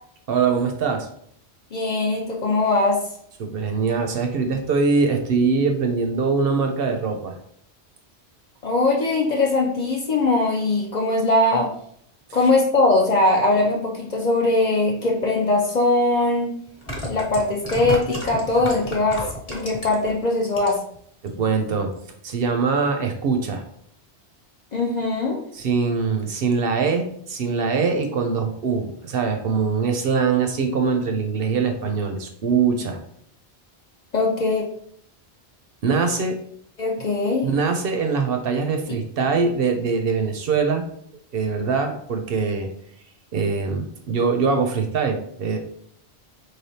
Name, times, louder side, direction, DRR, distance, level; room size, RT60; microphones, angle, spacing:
voice 1, 0.3-1.1 3.4-7.4 21.2-21.9 22.2-23.6 25.5-33.0 35.8-36.4 37.4-40.9 41.3-42.7 43.3-45.6, right 5 dB, 65° right, 5 dB, 0.7 m, -23 dB
voice 2, 1.7-3.0 8.6-11.7 12.3-16.5 17.0-20.8 24.7-25.4 34.1-34.6 36.8-37.5, left 2 dB, 50° left, -1 dB, 0.6 m, -21 dB
sound 1, 15.7-15.8 16.7-20.1 20.5-21.0 21.3-21.4, equal, 30° left, 1.1 m, -31 dB
4.1 x 3.3 x 2.7 m, 0.66 s
omnidirectional pair, 1.1 m